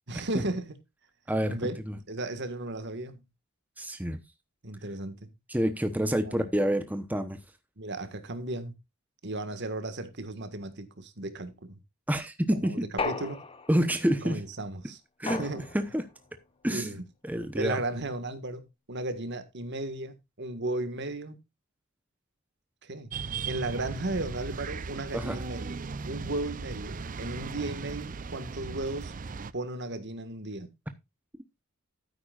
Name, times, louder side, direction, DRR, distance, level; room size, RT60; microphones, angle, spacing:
voice 1, 0.1-0.8 1.5-1.8 2.1-3.2 4.6-5.3 6.2-6.5 7.8-8.7 9.2-11.8 12.6-13.4 14.2-15.0 15.3-15.6 16.7-17.0 17.5-21.4 22.8-23.1 23.5-25.7 26.1-29.1 29.5-30.7, right 2 dB, 55° right, 1.7 m, -35 dB
voice 2, 3.8-4.2 5.5-7.4 12.1-12.8 13.7-14.4 15.2-15.5 15.7-16.0 16.6-16.9 17.2-17.8 25.1-25.4, equal, 10° right, 0.9 m, -28 dB
sound 1, 13.0-14.0 15.3-16.1, left 3 dB, 25° left, 1.1 m, -35 dB
sound 2, 23.1-29.5, right 4 dB, 40° right, 0.5 m, -37 dB
13.0 x 9.5 x 2.4 m
head